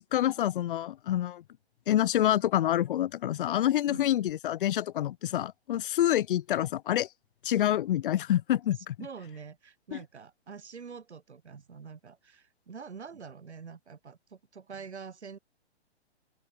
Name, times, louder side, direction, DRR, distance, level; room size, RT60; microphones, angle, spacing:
voice 1, 0.0-1.4 1.9-7.1 7.4-9.0 9.9-10.0, left 12 dB, 50° left, 0.6 m, -27 dB
voice 2, 8.8-15.4, right 6 dB, 80° right, 7.8 m, -46 dB
hypercardioid pair, 135°, 33 cm